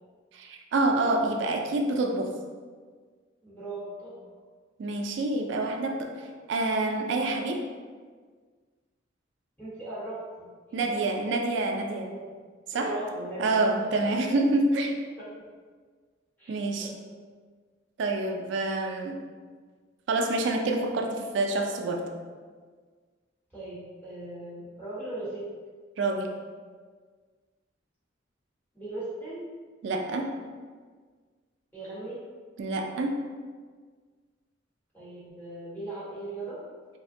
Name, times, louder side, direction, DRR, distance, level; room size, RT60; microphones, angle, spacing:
voice 1, 0.3-2.3 4.8-7.6 10.7-12.1 12.7-12.9 13.4-14.9 16.5-16.9 18.0-19.2 20.1-22.1 26.0-26.4 29.8-30.3 32.6-33.2, right 2 dB, 65° right, 3 dB, 0.3 m, -27 dB
voice 2, 3.4-4.3 9.6-11.1 12.1-12.3 12.7-14.2 16.4-16.9 23.5-25.5 28.7-29.4 31.7-32.2 34.9-36.6, right 2 dB, 10° left, -11 dB, 1.0 m, -39 dB
3.2 x 2.1 x 2.6 m, 1.5 s
head